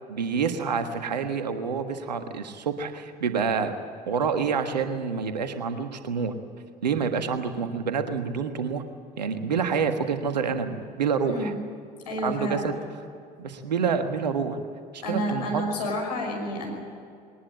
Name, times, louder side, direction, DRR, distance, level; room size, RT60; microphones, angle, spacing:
voice 1, 0.1-3.7 4.1-6.3 6.8-8.8 9.2-11.5 12.2-12.8 13.4-14.6 14.9-15.6, right 6 dB, 85° right, 8 dB, 1.5 m, -27 dB
voice 2, 11.2-11.6 12.1-12.6 15.0-16.7, equal, 80° left, 1 dB, 5.6 m, -29 dB
21.0 x 19.0 x 8.8 m, 2.4 s
figure-of-eight pair, 60°, 21 cm